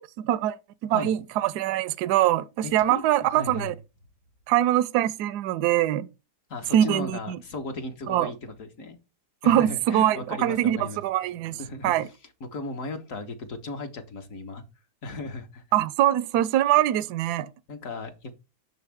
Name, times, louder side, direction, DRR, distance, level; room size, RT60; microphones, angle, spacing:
voice 1, 0.2-0.6 0.8-3.7 4.5-6.1 6.7-7.4 8.1-8.3 9.5-11.6 11.8-12.1 15.7-17.5, right 12 dB, 75° right, 1.1 m, -23 dB
voice 2, 2.6-3.7 6.5-9.0 9.4-11.0 11.5-14.6 15.0-15.6 17.7-18.3, left 3 dB, 55° left, 1.5 m, -36 dB
6.9 x 6.5 x 3.5 m
omnidirectional pair, 1.8 m